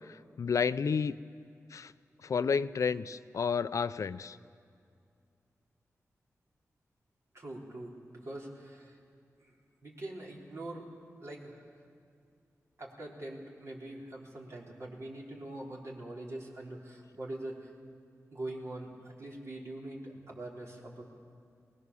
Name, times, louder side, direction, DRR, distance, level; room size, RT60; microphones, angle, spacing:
voice 1, 0.4-1.2 1.7-1.9 2.2-4.4, left 6 dB, 65° left, 14 dB, 0.5 m, -30 dB
voice 2, 7.3-9.0 9.4-9.5 9.8-10.9 11.2-11.6 12.8-17.7 18.3-21.1, right 1 dB, 60° right, -3 dB, 3.9 m, -43 dB
22.5 x 19.5 x 7.0 m, 2.4 s
wide cardioid pair, 85°, 6 cm